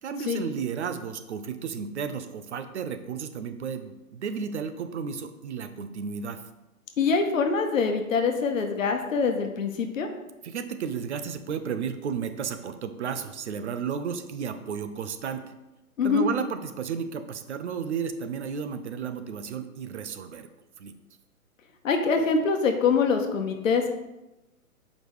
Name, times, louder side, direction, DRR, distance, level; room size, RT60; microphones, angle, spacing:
voice 1, 0.0-6.4 10.4-15.5 16.0-20.5 20.8-20.9, right 6 dB, 50° right, 9 dB, 0.7 m, -33 dB
voice 2, 7.0-10.1 16.0-16.3 21.8-23.9, left 5 dB, 60° left, 5 dB, 1.1 m, -24 dB
7.2 x 5.2 x 3.2 m, 0.98 s
hypercardioid pair, 145°, 44 cm